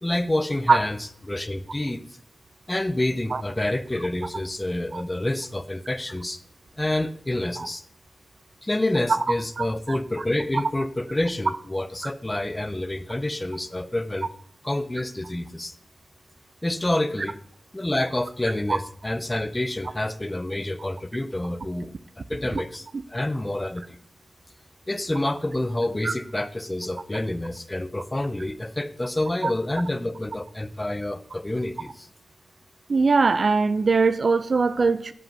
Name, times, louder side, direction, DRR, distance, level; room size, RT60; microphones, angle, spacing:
voice 1, 0.0-1.0 1.2-2.0 2.7-6.4 6.8-7.8 8.6-14.3 14.6-15.7 16.6-17.4 17.7-21.9 22.3-24.0 24.9-32.1, left 1 dB, 15° left, 13 dB, 0.5 m, -28 dB
voice 2, 9.6-10.0 18.7-18.8 22.5-22.6 22.9-23.0 26.0-26.1 29.4-29.5 32.9-35.1, right 4 dB, 50° right, 14 dB, 0.4 m, -21 dB
7.7 x 5.5 x 5.3 m, 0.62 s
wide cardioid pair, 120°, 0 cm